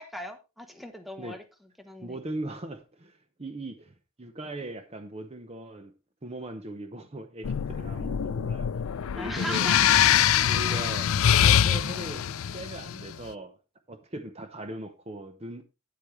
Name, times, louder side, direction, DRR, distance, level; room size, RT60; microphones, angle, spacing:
voice 1, 0.0-1.4 1.8-2.2 9.2-10.3 10.7-10.9, equal, ahead, 1.1 m, -39 dB
voice 2, 2.0-5.9 6.2-8.8 9.1-9.7 10.4-11.1 11.4-13.6 13.9-15.6, right 1 dB, 30° right, 0.8 m, -39 dB
sound 1, 7.4-13.1, left 9 dB, 65° left, 0.4 m, -24 dB
9.4 x 8.3 x 3.2 m
head